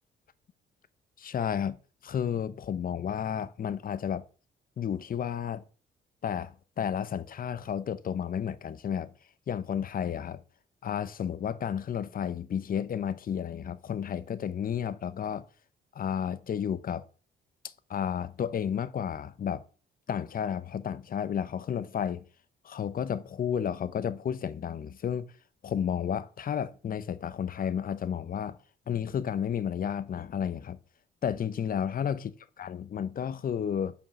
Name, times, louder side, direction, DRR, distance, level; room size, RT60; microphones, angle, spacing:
voice 1, 1.2-1.8 2.0-4.2 4.8-5.6 6.2-9.1 9.5-10.4 10.8-15.4 15.9-17.0 17.6-19.6 20.1-22.2 22.6-25.3 25.6-28.6 28.9-30.8 31.2-33.9, left 8 dB, 45° left, 0.7 m, -32 dB
5.3 x 4.9 x 5.9 m
cardioid pair, 90°, 20 cm